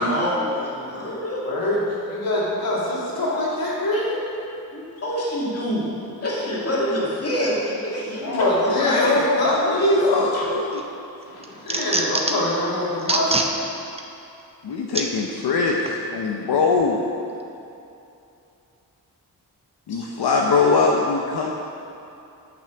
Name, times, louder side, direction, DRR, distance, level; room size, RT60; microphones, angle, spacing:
voice 1, 0.0-1.4 4.7-5.9 6.2-9.0, equal, 40° left, -6 dB, 2.2 m, -26 dB
voice 2, 1.4-4.2 8.2-10.4 11.3-13.4 19.9-20.0, left 1 dB, 70° left, -6 dB, 2.5 m, -23 dB
voice 3, 8.7-10.8 14.6-17.1 19.9-21.5, left 4 dB, 85° left, 0 dB, 0.8 m, -22 dB
sound 1, 10.4-10.8 11.2-12.5 13.0-13.5 14.0-14.1 14.9-15.1 15.9-16.0, right 2 dB, 15° right, 0.6 m, -24 dB
8.7 x 6.2 x 6.8 m, 2.8 s
wide cardioid pair, 165°, 38 cm